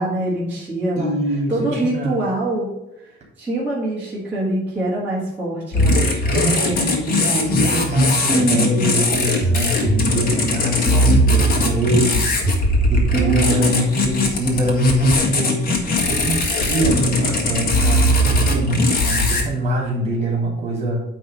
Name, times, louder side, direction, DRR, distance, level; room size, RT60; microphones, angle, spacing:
voice 1, 0.0-1.2 1.5-2.7 3.0-6.3 8.3-8.9 11.0-11.7 13.1-13.8, right 2 dB, 10° right, -8 dB, 1.8 m, -24 dB
voice 2, 1.0-2.2 6.3-12.3 12.9-21.0, right 1 dB, 35° right, 0 dB, 2.9 m, -23 dB
sound 1, 5.7-19.4, left 1 dB, 50° left, 1.5 m, -19 dB
9.2 x 3.3 x 5.1 m, 0.93 s
cardioid pair, 180°, 19 cm